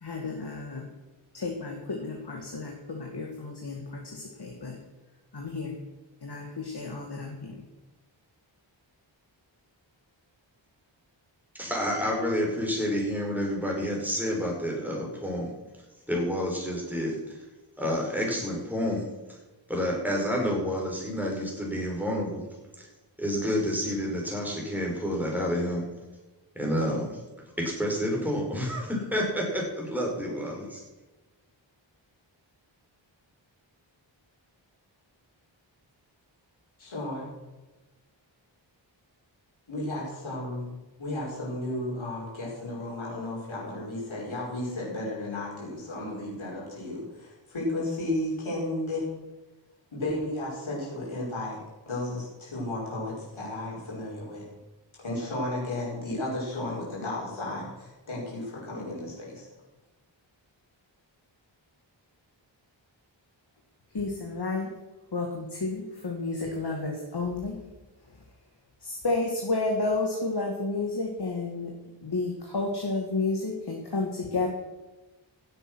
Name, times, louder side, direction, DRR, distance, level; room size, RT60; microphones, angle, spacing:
voice 1, 0.0-0.8 1.3-4.8 5.3-5.7 6.2-7.6 63.9-64.7 65.1-67.6 68.8-71.7 72.0-74.5, left 3 dB, 55° left, 1 dB, 2.1 m, -31 dB
voice 2, 11.5-15.5 16.1-17.4 17.8-19.4 19.7-22.5 22.8-22.9 23.2-25.9 26.6-27.2 27.6-30.8, equal, 5° right, -2 dB, 5.2 m, -29 dB
voice 3, 36.8-37.3 39.7-49.0 49.9-51.6 51.9-54.4 55.0-59.4, left 1 dB, 85° left, -5 dB, 5.3 m, -33 dB
16.0 x 8.0 x 6.3 m, 1.1 s
wide cardioid pair, 75°, 47 cm